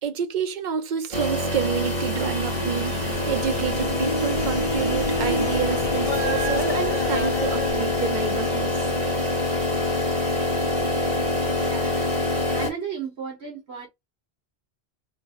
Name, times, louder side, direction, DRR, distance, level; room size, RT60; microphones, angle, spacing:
voice 1, 0.0-8.9, right 7 dB, 50° right, 0.8 m, -29 dB
sound 1, 1.1-12.7, left 2 dB, 30° right, 1.5 m, -25 dB
sound 2, 1.3-11.6, left 4 dB, 55° left, 0.8 m, -38 dB
sound 3, 2.5-5.6 5.9-7.7, equal, 35° left, 1.4 m, -30 dB
voice 2, 11.3-12.0 12.5-13.9, right 7 dB, 80° right, 1.3 m, -35 dB
3.2 x 2.7 x 4.2 m
omnidirectional pair, 1.1 m